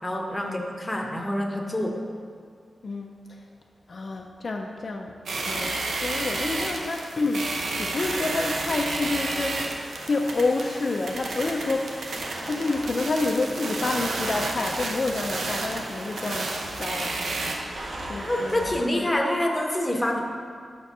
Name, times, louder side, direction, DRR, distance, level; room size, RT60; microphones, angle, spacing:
voice 1, 0.0-2.0 18.2-20.2, left 1 dB, 10° left, 1 dB, 0.7 m, -26 dB
voice 2, 2.8-3.4 3.9-5.1 5.5-12.0 12.5-17.2 18.1-19.1, left 3 dB, 50° left, 2 dB, 0.4 m, -29 dB
sound 1, 5.3-17.6, right 2 dB, 80° right, 0.7 m, -31 dB
Domestic sounds home sounds, 8.4-18.8, right 1 dB, 50° right, 0.8 m, -40 dB
6.1 x 4.3 x 5.9 m, 2.1 s
wide cardioid pair, 135°, 0 cm